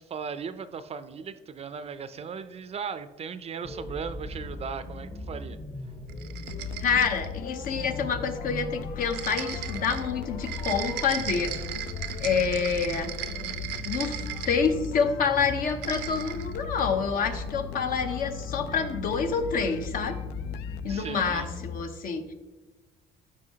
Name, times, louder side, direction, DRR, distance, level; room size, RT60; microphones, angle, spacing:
voice 1, 0.0-5.6 20.9-21.5, right 6 dB, 40° right, 12 dB, 0.4 m, -37 dB
sound 1, 3.6-21.8, left 2 dB, 35° left, 1.0 m, -40 dB
sound 2, 6.1-7.4 9.1-15.0 15.6-16.6, right 13 dB, 90° right, 0.6 m, -37 dB
sound 3, 6.5-21.4, left 8 dB, 85° left, 0.4 m, -39 dB
voice 2, 6.8-11.5 12.2-13.1 13.8-20.2 20.8-22.3, left 5 dB, 55° left, 7 dB, 0.9 m, -27 dB
12.5 x 4.7 x 2.8 m, 1.2 s
cardioid pair, 110°, 17 cm